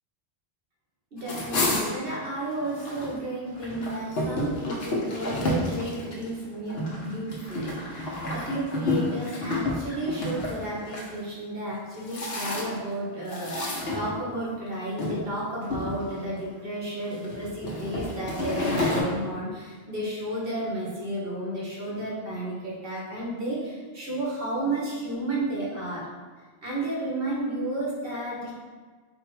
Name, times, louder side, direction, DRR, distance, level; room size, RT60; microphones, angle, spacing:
voice 1, 1.1-13.7 13.9-26.1 26.6-28.5, right 1 dB, 60° right, -5 dB, 1.4 m, -32 dB
sound 1, 1.2-3.1 3.5-11.1 11.7-12.9 13.3-14.5 15.0-15.2 15.6-16.4 17.0-19.0, left 2 dB, 75° left, 1.0 m, -30 dB
4.2 x 2.5 x 4.6 m, 1.5 s
omnidirectional pair, 1.1 m